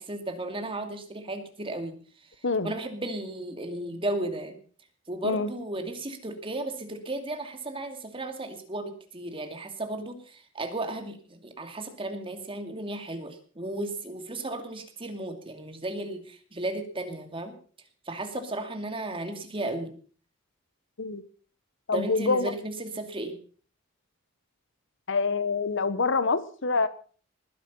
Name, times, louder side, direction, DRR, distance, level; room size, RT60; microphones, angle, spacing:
voice 1, 0.0-2.3 2.6-4.6 5.1-17.6 18.1-19.9 21.9-23.4, right 2 dB, 25° right, 6 dB, 2.5 m, -34 dB
voice 2, 21.9-22.5 25.1-26.9, left 4 dB, 65° left, 14 dB, 1.2 m, -26 dB
20.0 x 10.5 x 5.5 m, 0.43 s
head